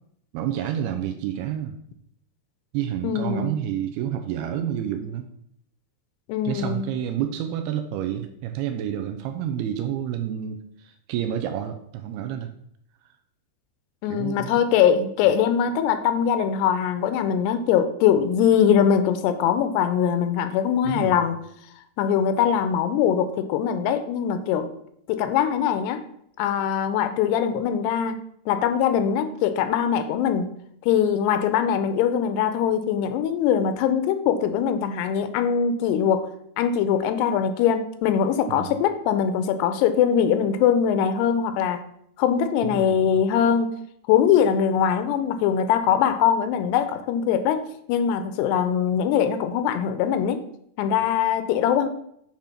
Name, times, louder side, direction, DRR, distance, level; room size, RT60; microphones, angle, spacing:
voice 1, 0.3-1.8 2.7-5.3 6.4-12.5 14.1-14.5 20.9-21.3 38.5-38.8 42.6-43.1, right 10 dB, 80° right, 7 dB, 2.3 m, -29 dB
voice 2, 3.0-3.5 6.3-7.0 14.0-21.4 22.0-24.7 25.1-26.0 26.4-28.2 28.5-30.5 30.8-36.3 36.6-41.8 42.2-43.7 44.1-50.4 50.8-51.9, left 8 dB, 85° left, 10 dB, 2.6 m, -22 dB
8.9 x 3.7 x 5.7 m, 0.72 s
omnidirectional pair, 4.9 m